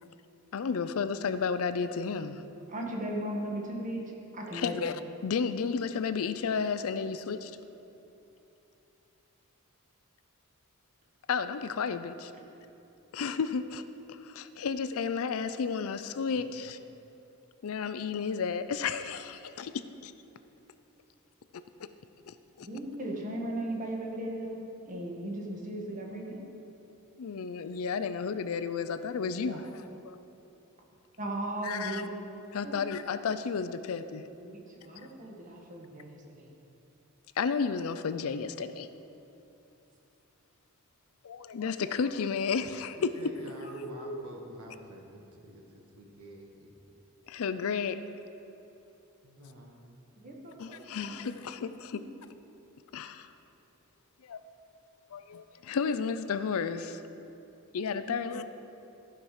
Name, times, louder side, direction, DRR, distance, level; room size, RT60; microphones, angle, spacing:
voice 1, 0.5-2.4 4.5-7.5 11.3-12.3 13.1-13.8 14.1-16.8 17.6-20.1 22.3-22.7 27.2-29.6 30.0-30.2 31.6-32.0 32.5-34.2 37.4-38.9 41.2-43.1 47.3-48.0 50.6-52.0 52.9-53.3 54.2-54.4 55.1-57.0 57.7-58.4, left 5 dB, 70° left, 12 dB, 0.4 m, -32 dB
voice 2, 2.7-4.0 4.3-4.7 22.6-26.4 29.4-29.6 31.2-32.1 32.6-32.8 34.4-36.5 43.6-44.2 50.2-51.3 51.9-52.0, right 1 dB, 35° right, -1 dB, 1.5 m, -37 dB
voice 3, 42.9-46.9 49.2-49.9 57.9-58.4, right 1 dB, 85° right, 1 dB, 1.4 m, -48 dB
14.0 x 5.9 x 4.9 m, 2.9 s
head